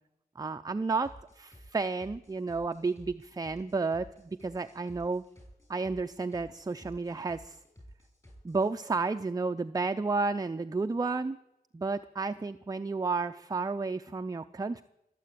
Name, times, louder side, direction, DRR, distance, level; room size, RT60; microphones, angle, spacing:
voice 1, 0.4-5.2 5.7-7.6 8.4-11.4 11.7-14.8, right 4 dB, 25° right, 9 dB, 0.5 m, -32 dB
sound 1, 1.0-8.7, equal, 20° left, 6.6 m, -54 dB
22.0 x 7.7 x 8.4 m, 0.85 s
wide cardioid pair, 70°, 17 cm